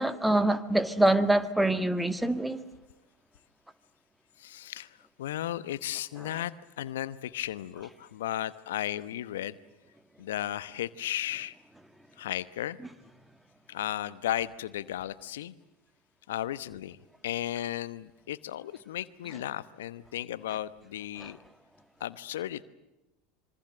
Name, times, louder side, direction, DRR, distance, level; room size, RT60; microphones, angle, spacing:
voice 1, 0.0-2.6, right 1 dB, 5° right, 1.9 m, -25 dB
voice 2, 4.4-9.6 10.2-11.6 12.2-12.8 13.7-15.5 16.3-17.0 17.2-21.4 22.0-22.6, left 12 dB, 70° left, 0.9 m, -35 dB
26.5 x 24.0 x 7.7 m
hypercardioid pair, 80°, 0 cm